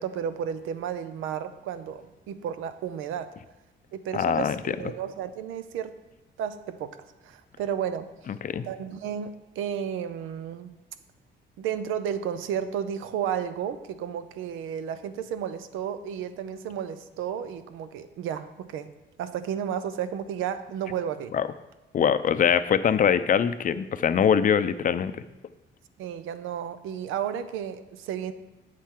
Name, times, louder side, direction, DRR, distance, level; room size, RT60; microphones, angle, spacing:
voice 1, 0.0-3.3 3.9-5.9 6.4-7.0 7.2-8.1 8.6-10.7 11.6-18.9 19.2-21.3 26.0-28.3, right 8 dB, 90° right, 12 dB, 0.6 m, -32 dB
voice 2, 4.1-4.9 8.4-8.7 21.3-21.5 21.9-25.1, left 8 dB, 45° left, 12 dB, 0.5 m, -23 dB
8.4 x 7.4 x 3.7 m, 0.99 s
cardioid pair, 90°, 20 cm